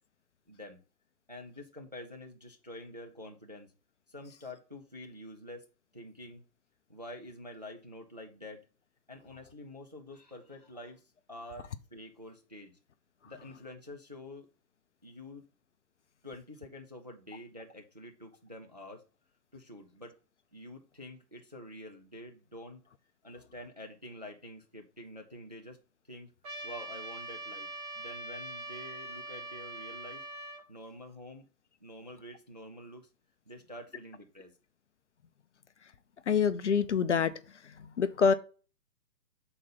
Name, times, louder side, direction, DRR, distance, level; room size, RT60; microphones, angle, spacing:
voice 1, 0.5-0.8 1.3-3.7 4.1-5.7 5.9-6.4 6.9-8.6 9.1-12.8 13.2-14.5 15.0-15.4 16.2-19.0 19.5-20.2 20.5-22.8 23.2-25.8 26.1-26.3 26.6-27.7 27.9-30.2 30.7-31.5 31.8-33.1 33.5-34.5, left 1 dB, 30° right, 3 dB, 0.3 m, -47 dB
Trumpet, 26.4-30.6, right 2 dB, 60° right, 2.5 m, -42 dB
voice 2, 36.3-37.3 37.8-38.3, left 6 dB, 50° left, 12 dB, 0.4 m, -26 dB
5.7 x 3.9 x 5.3 m, 0.36 s
figure-of-eight pair, 130°, 49 cm